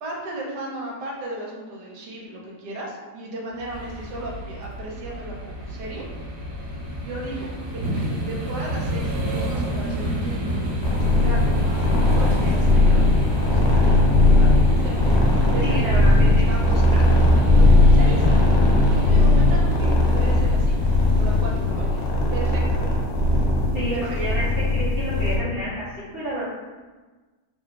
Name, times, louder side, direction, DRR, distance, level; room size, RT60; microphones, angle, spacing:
voice 1, 0.0-6.0 7.0-7.8 8.3-10.6 10.9-15.0 15.5-18.3 18.9-20.8 21.1-21.9 22.3-23.1 23.9-24.2, right 2 dB, 75° right, -2 dB, 1.2 m, -35 dB
sound 1, 3.6-22.6, right 1 dB, 50° right, 1.1 m, -29 dB
sound 2, 10.8-25.4, left 2 dB, 70° left, 1.1 m, -18 dB
voice 2, 15.6-16.4 23.7-24.4 24.7-26.4, equal, 50° left, -11 dB, 0.7 m, -30 dB
3.0 x 2.1 x 3.6 m, 1.3 s
omnidirectional pair, 1.9 m